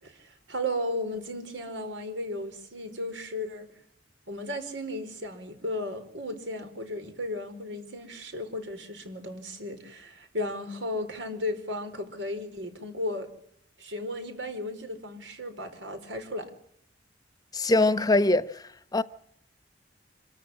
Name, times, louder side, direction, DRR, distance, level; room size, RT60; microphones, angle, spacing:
voice 1, 0.0-3.7 4.3-13.3 13.8-16.5, left 1 dB, 85° right, 4.6 m, -35 dB
voice 2, 17.5-18.6 18.9-19.0, left 2 dB, 20° left, 0.9 m, -22 dB
26.5 x 13.5 x 9.9 m
head